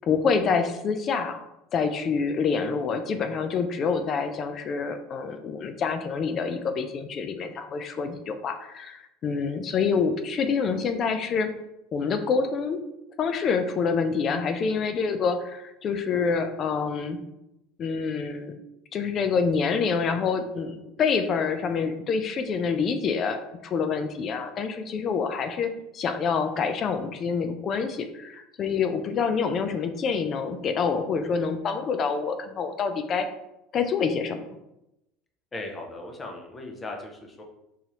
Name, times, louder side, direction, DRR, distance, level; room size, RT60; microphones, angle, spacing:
voice 1, 0.0-1.4 1.7-11.5 11.9-12.8 13.2-17.2 17.8-18.5 18.9-33.3 33.7-34.5, left 5 dB, 45° left, 8 dB, 0.4 m, -27 dB
voice 2, 35.5-37.4, left 2 dB, 25° left, 1 dB, 0.8 m, -38 dB
3.9 x 2.7 x 3.1 m, 0.89 s
supercardioid pair, 95°, 0 cm